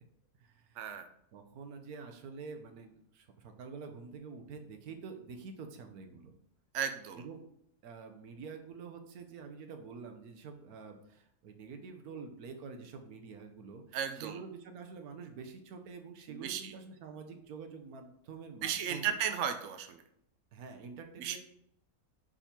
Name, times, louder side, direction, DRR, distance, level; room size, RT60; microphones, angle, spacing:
voice 1, 0.4-0.8 1.3-6.3 7.2-7.4 7.8-19.2 20.5-21.4, right 5 dB, 90° right, 5 dB, 1.3 m, -47 dB
voice 2, 6.7-7.2 13.9-14.4 16.3-16.7 18.6-20.0 21.2-21.4, right 8 dB, 65° right, 7 dB, 0.9 m, -35 dB
5.1 x 4.9 x 4.3 m, 0.72 s
omnidirectional pair, 1.5 m